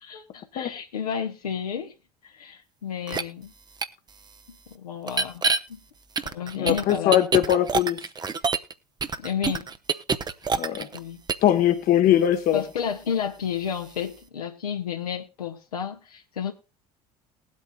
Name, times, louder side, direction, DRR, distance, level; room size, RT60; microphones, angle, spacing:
voice 1, 0.0-1.9 2.2-3.5 4.7-5.4 5.7-5.8 6.2-7.2 9.2-9.7 10.9-11.2 12.5-16.5, left 7 dB, 75° left, 1.3 m, -31 dB
sound 1, 3.1-3.2 3.8-3.9 5.1-5.6 6.2-8.7 9.0-11.0 11.3-11.5, right 5 dB, 20° right, 0.8 m, -26 dB
voice 2, 6.6-8.0 10.6-10.9 11.4-12.6, left 11 dB, 45° left, 1.2 m, -21 dB
20.0 x 8.3 x 2.3 m
figure-of-eight pair, 60°, 20 cm